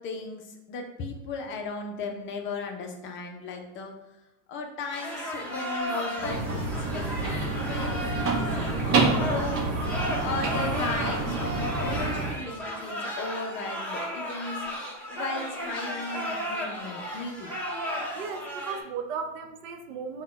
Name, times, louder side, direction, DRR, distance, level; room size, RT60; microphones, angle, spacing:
voice 1, 0.0-3.9 4.5-14.7 15.1-17.6, left 3 dB, 30° left, 3 dB, 0.6 m, -36 dB
sound 1, 4.9-18.8, equal, 5° left, 0.8 m, -34 dB
sound 2, 6.2-12.3, right 3 dB, 35° right, 0.9 m, -28 dB
voice 2, 18.1-20.2, right 5 dB, 75° right, 6 dB, 0.7 m, -35 dB
4.0 x 2.3 x 4.5 m, 0.95 s
supercardioid pair, 120°, 39 cm